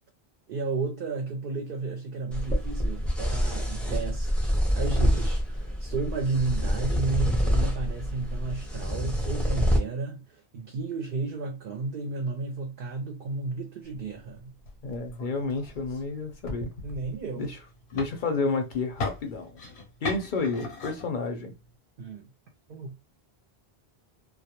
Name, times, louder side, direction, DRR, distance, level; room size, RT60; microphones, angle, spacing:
voice 1, 0.5-14.5 16.8-17.5 22.0-22.3 22.7-23.0, right 4 dB, 60° right, 0.6 m, -33 dB
sound 1, 2.3-9.8, equal, ahead, 0.5 m, -27 dB
sound 2, 13.8-21.8, left 3 dB, 85° left, 1.0 m, -41 dB
voice 2, 14.8-16.7 17.4-17.6 17.9-19.6 20.0-21.5, left 3 dB, 55° left, 0.6 m, -30 dB
2.2 x 2.1 x 2.8 m
omnidirectional pair, 1.1 m